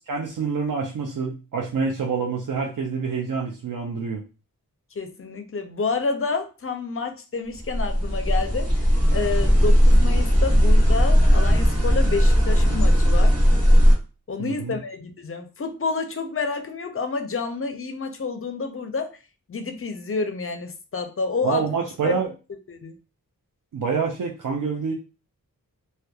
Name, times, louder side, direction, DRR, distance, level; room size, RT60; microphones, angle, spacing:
voice 1, 0.1-4.2 14.4-14.8 21.4-22.3 23.7-24.9, right 5 dB, 60° right, -1 dB, 0.5 m, -27 dB
voice 2, 5.0-8.7 9.1-13.3 14.3-19.2 19.5-21.6 22.0-22.2 22.7-22.9, left 4 dB, 40° left, 6 dB, 0.5 m, -29 dB
sound 1, 7.5-13.9, equal, 45° right, 1.4 m, -17 dB
2.7 x 2.2 x 2.3 m, 0.31 s
wide cardioid pair, 90°, 36 cm